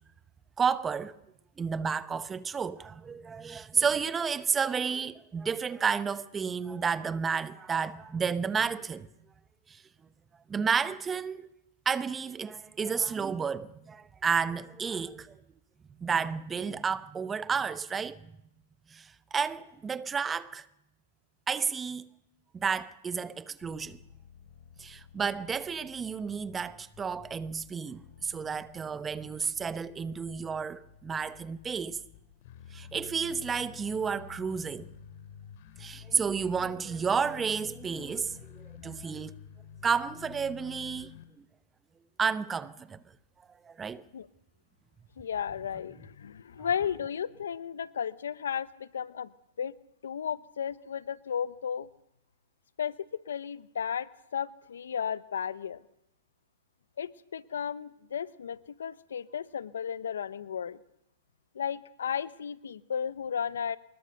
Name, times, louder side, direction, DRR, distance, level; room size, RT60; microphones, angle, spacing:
voice 1, 0.6-1.2 1.6-9.1 9.7-9.8 10.5-11.5 11.9-15.4 16.0-18.2 18.9-20.6 21.5-22.1 22.5-24.0 24.8-32.0 32.7-34.9 35.8-39.3 39.8-41.1 41.4-41.5 42.2-43.0 43.7-44.0, right 6 dB, 15° right, 0.9 m, -31 dB
sound 1, 23.6-41.2, left 9 dB, 55° left, 2.9 m, -51 dB
voice 2, 45.2-49.3 49.6-49.7 50.0-51.9 52.8-55.8 57.0-60.8 61.5-63.8, left 8 dB, 85° left, 1.0 m, -34 dB
25.0 x 20.5 x 6.6 m
hypercardioid pair, 135°, 0 cm